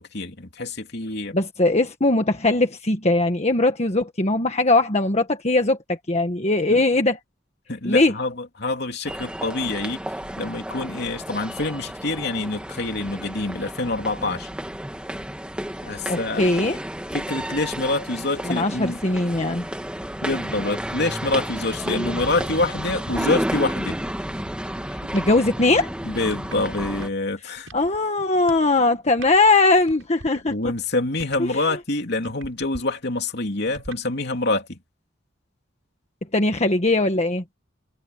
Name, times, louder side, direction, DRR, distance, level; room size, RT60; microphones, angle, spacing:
voice 1, 0.0-1.4 6.7-6.8 7.7-10.0 10.4-14.5 15.8-16.4 17.1-19.0 20.2-24.0 26.0-27.7 30.4-34.8, left 2 dB, 55° left, 3.0 m, -26 dB
voice 2, 1.3-7.2 7.8-8.1 16.1-16.8 18.4-19.7 25.1-25.9 27.7-30.5 31.4-31.6 36.3-37.4, left 2 dB, 35° left, 1.5 m, -20 dB
sound 1, 9.0-27.1, equal, 5° right, 1.6 m, -31 dB
sound 2, 21.6-25.4 25.7-27.3 27.6-28.0 28.4-28.7 29.0-31.6 32.2-32.8 33.7-34.0, right 1 dB, 85° right, 6.8 m, -43 dB
head